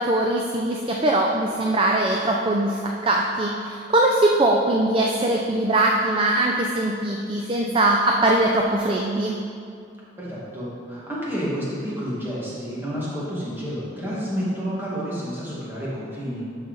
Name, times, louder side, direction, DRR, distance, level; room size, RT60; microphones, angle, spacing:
voice 1, 0.0-9.4, right 2 dB, 30° right, 0 dB, 0.4 m, -21 dB
voice 2, 10.2-16.4, equal, 10° right, -7 dB, 1.8 m, -30 dB
12.0 x 4.2 x 4.0 m, 2.4 s
head